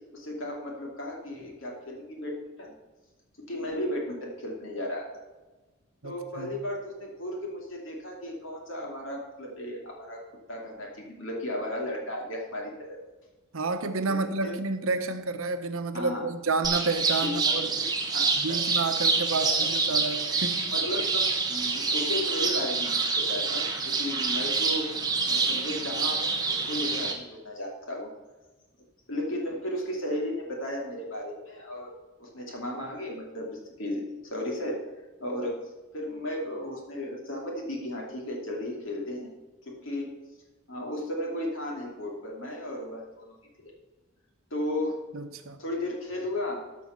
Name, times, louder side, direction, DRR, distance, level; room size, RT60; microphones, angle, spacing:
voice 1, 0.1-2.7 3.4-5.1 6.0-10.2 10.5-13.0 14.1-14.5 15.9-16.3 17.2-17.4 17.8-18.6 19.4-19.7 20.7-24.9 25.3-28.1 29.1-31.9 32.2-34.8 35.2-35.6 35.9-39.3 39.6-40.1 40.7-43.2 44.5-44.9 45.6-46.6, left 1 dB, 65° left, 2.8 m, -34 dB
voice 2, 6.0-6.5 13.5-17.7 18.4-20.6 45.1-45.6, right 3 dB, 75° right, 0.9 m, -30 dB
sound 1, 16.6-27.1, right 4 dB, 20° right, 1.1 m, -27 dB
13.0 x 5.4 x 5.8 m
head